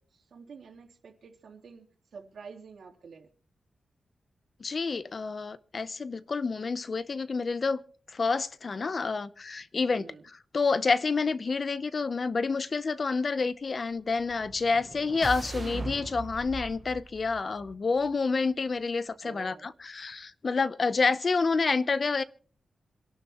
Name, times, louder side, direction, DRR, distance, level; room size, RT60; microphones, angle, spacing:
voice 1, 0.0-1.9 2.1-3.3 9.9-10.2 19.2-19.7, right 5 dB, 80° right, 3.1 m, -48 dB
voice 2, 4.6-7.8 8.1-10.0 10.5-22.2, left 4 dB, 40° left, 0.6 m, -28 dB
sound 1, 14.1-18.3, right 3 dB, 30° right, 0.8 m, -40 dB
26.5 x 11.5 x 3.0 m
wide cardioid pair, 170°, 0 cm